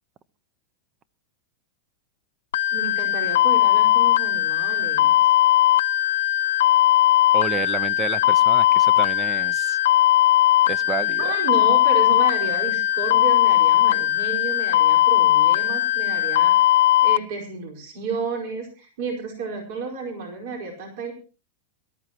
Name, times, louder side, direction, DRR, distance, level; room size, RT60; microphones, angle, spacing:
sound 1, 2.5-17.2, left 13 dB, 85° left, 0.9 m, -19 dB
voice 1, 2.7-5.2 11.2-21.1, right 4 dB, 60° right, 1 dB, 4.9 m, -32 dB
voice 2, 7.3-9.8 10.7-11.3, right 7 dB, 25° right, 19 dB, 0.7 m, -30 dB
22.5 x 13.5 x 3.0 m, 0.34 s
supercardioid pair, 155°, 0 cm